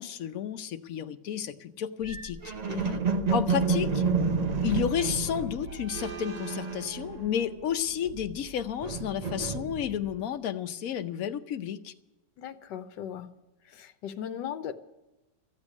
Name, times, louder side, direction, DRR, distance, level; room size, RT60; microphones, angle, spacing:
voice 1, 0.0-2.4 3.3-4.0 4.6-11.9, left 9 dB, 60° left, 8 dB, 1.1 m, -31 dB
sound 1, 2.0-7.6 7.9-10.2, right 4 dB, 75° right, 0.3 m, -30 dB
voice 2, 2.6-3.0 12.4-13.3 13.7-14.7, left 9 dB, 80° left, 8 dB, 1.4 m, -38 dB
14.0 x 8.2 x 9.6 m, 1.0 s
omnidirectional pair, 1.9 m